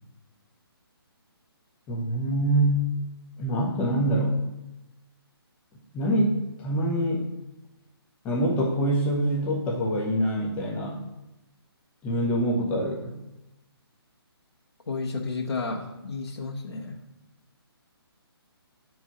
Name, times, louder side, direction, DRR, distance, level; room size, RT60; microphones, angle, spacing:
voice 1, 1.9-2.9 3.4-4.4 5.9-7.3 8.2-11.0 12.0-13.2, right 1 dB, 10° left, -2 dB, 0.8 m, -25 dB
voice 2, 14.9-17.0, left 4 dB, 80° left, -1 dB, 1.2 m, -32 dB
7.5 x 4.7 x 5.7 m, 0.97 s
hypercardioid pair, 160°, 13 cm